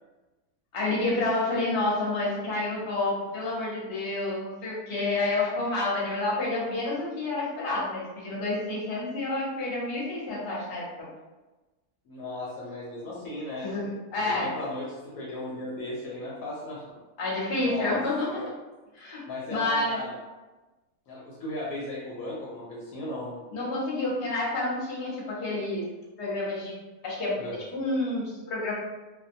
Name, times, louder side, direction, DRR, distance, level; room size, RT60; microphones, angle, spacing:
voice 1, 0.7-11.1 13.6-14.5 17.2-18.4 18.9-19.2 19.5-20.0 23.5-25.8 26.2-26.7 27.0-28.7, left 2 dB, 45° left, -6 dB, 0.9 m, -29 dB
voice 2, 12.1-13.7 14.2-16.9 17.2-18.0 18.3-18.5 19.3-20.1 21.1-23.4 27.4-27.5, left 1 dB, 70° left, -6 dB, 0.9 m, -36 dB
2.5 x 2.1 x 2.6 m, 1.2 s
omnidirectional pair, 1.6 m